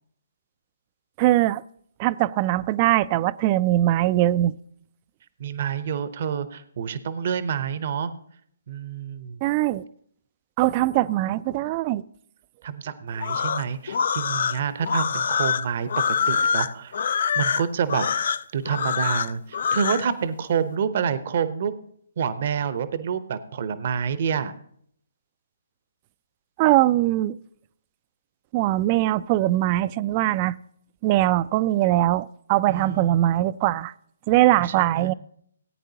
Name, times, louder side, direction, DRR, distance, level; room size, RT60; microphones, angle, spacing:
voice 1, 1.2-1.6 2.0-4.6 9.4-9.8 10.6-12.0 26.6-27.4 28.5-30.6 31.0-33.9 34.3-35.1, right 15 dB, 30° right, 18 dB, 0.3 m, -21 dB
voice 2, 5.4-8.1 8.7-9.4 12.6-17.0 17.4-18.1 18.5-21.7 22.2-24.5 32.7-33.2 34.6-35.1, right 7 dB, 50° right, 14 dB, 0.7 m, -28 dB
sound 1, 13.2-20.1, left 7 dB, 55° left, 0.4 m, -25 dB
18.0 x 9.2 x 2.8 m, 0.66 s
figure-of-eight pair, 135°, 0 cm